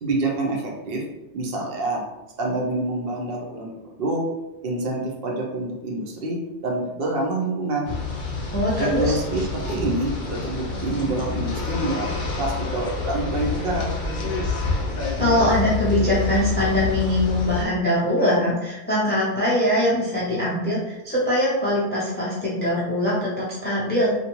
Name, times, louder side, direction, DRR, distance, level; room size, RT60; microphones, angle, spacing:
voice 1, 0.0-1.0 1.3-2.0 2.4-4.2 4.6-7.9 8.8-12.1 12.4-13.9, right 2 dB, 60° right, -1 dB, 0.7 m, -27 dB
sound 1, 7.9-17.6, left 4 dB, 55° left, 0.7 m, -27 dB
voice 2, 8.5-9.2 15.2-24.1, left 1 dB, 15° left, -7 dB, 0.3 m, -22 dB
2.5 x 2.2 x 2.9 m, 1.0 s
omnidirectional pair, 1.2 m